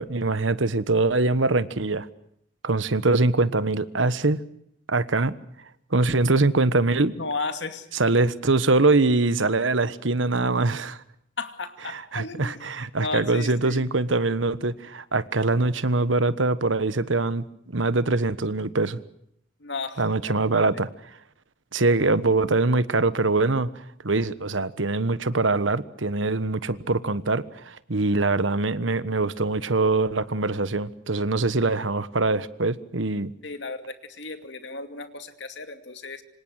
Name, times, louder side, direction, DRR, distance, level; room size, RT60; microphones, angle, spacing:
voice 1, 0.0-2.1 2.6-4.4 4.9-5.3 5.9-7.1 7.9-11.0 11.9-19.0 20.0-20.9 21.7-23.7 24.0-33.3, right 3 dB, 75° right, 14 dB, 1.4 m, -23 dB
voice 2, 7.2-7.9 11.4-12.6 13.0-13.8 19.6-20.0 20.5-20.6 33.4-36.2, left 3 dB, 60° left, 8 dB, 2.5 m, -34 dB
27.0 x 25.5 x 6.5 m, 0.72 s
head